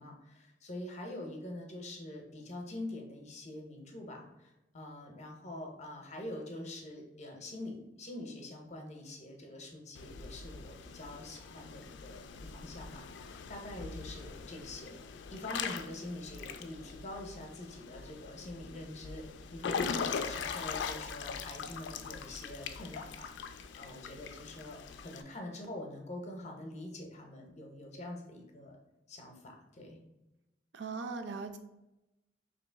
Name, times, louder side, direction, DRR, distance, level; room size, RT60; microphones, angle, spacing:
voice 1, 0.0-14.9 15.3-28.8 29.1-30.0, left 1 dB, 40° left, 2 dB, 0.7 m, -45 dB
Water / Splash splatter / Drip, 9.9-25.2, left 6 dB, 75° left, 0.3 m, -41 dB
voice 2, 30.7-31.6, right 4 dB, 70° right, 6 dB, 0.4 m, -39 dB
3.0 x 2.8 x 4.4 m, 0.95 s
head